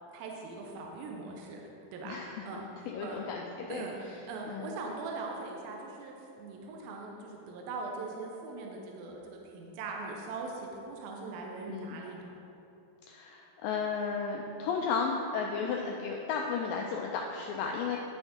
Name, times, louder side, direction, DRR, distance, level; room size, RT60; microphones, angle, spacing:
voice 1, 0.1-1.6 1.9-2.2 2.5-2.7 3.0-3.2 3.7-4.0 4.3-12.4, right 3 dB, 75° right, 0 dB, 2.5 m, -41 dB
voice 2, 2.0-2.4 2.9-4.2 4.5-4.8 11.7-12.0 13.1-18.0, left 5 dB, 85° left, 1 dB, 2.0 m, -34 dB
12.0 x 5.2 x 3.7 m, 2.8 s
omnidirectional pair, 4.4 m